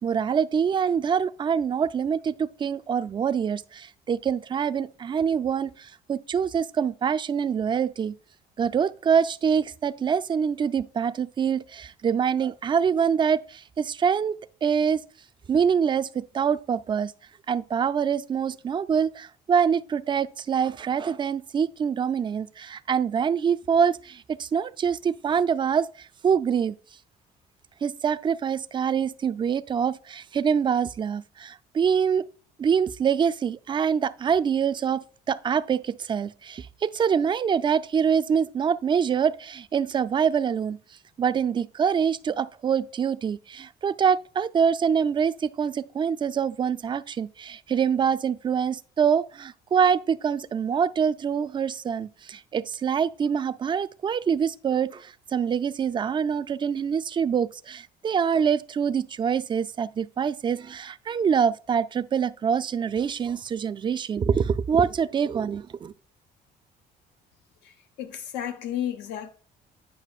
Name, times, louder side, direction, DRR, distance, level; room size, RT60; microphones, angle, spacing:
voice 1, 0.0-8.1 8.6-15.0 15.5-17.1 17.5-26.8 27.8-32.2 32.6-40.8 41.2-65.9, right 7 dB, 30° right, 0.4 m, -25 dB
voice 2, 67.6-69.3, left 10 dB, 90° left, 1.0 m, -33 dB
9.1 x 5.3 x 2.4 m
cardioid pair, 110°, 17 cm